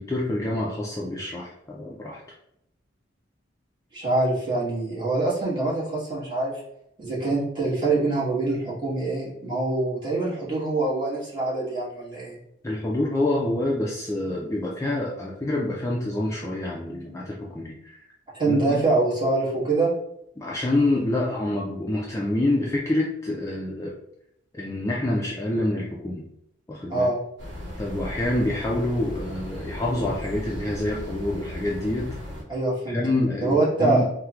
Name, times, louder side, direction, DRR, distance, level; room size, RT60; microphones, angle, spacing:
voice 1, 0.0-2.2 12.6-18.0 18.5-18.8 20.4-23.9 24.5-26.2 26.7-27.1 27.8-32.2 32.9-34.1, left 1 dB, 15° left, -4 dB, 0.3 m, -27 dB
voice 2, 3.9-6.6 7.0-12.4 18.4-19.9 26.9-27.2 32.5-33.0 33.4-34.1, right 2 dB, 25° right, -8 dB, 1.3 m, -24 dB
sound 1, 27.4-32.4, left 1 dB, 70° right, 0.9 m, -36 dB
4.4 x 2.1 x 2.3 m, 0.78 s
head